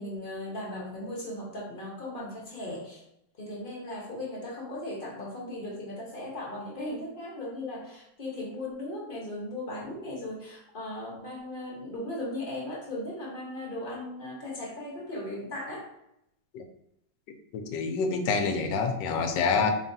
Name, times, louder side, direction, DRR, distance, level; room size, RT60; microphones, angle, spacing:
voice 1, 0.0-3.0 3.4-15.9, left 1 dB, 35° left, -4 dB, 1.0 m, -37 dB
voice 2, 17.5-19.7, left 4 dB, 85° left, 6 dB, 1.3 m, -27 dB
4.6 x 3.1 x 2.6 m, 0.81 s
omnidirectional pair, 1.9 m